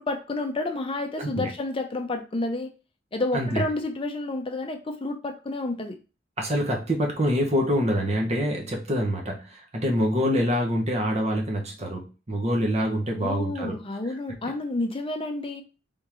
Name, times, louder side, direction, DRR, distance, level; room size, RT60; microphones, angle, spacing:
voice 1, 0.0-2.7 3.1-6.0 13.1-15.6, left 2 dB, 30° left, 5 dB, 0.6 m, -30 dB
voice 2, 1.2-1.5 3.3-3.6 6.4-13.8, equal, 35° right, 1 dB, 1.0 m, -25 dB
3.6 x 3.5 x 3.0 m, 0.32 s
head